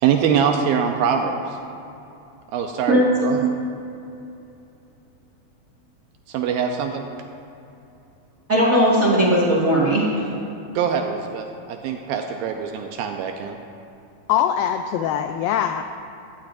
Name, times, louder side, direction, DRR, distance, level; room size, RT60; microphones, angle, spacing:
voice 1, 0.0-1.6 2.5-3.5 6.3-7.1 10.8-13.6, right 7 dB, 80° right, 3 dB, 2.4 m, -23 dB
voice 2, 8.5-10.3, right 1 dB, 60° right, -5 dB, 0.8 m, -18 dB
voice 3, 14.3-15.8, left 9 dB, 85° left, 7 dB, 2.0 m, -22 dB
17.5 x 13.0 x 2.6 m, 2.8 s
omnidirectional pair, 4.5 m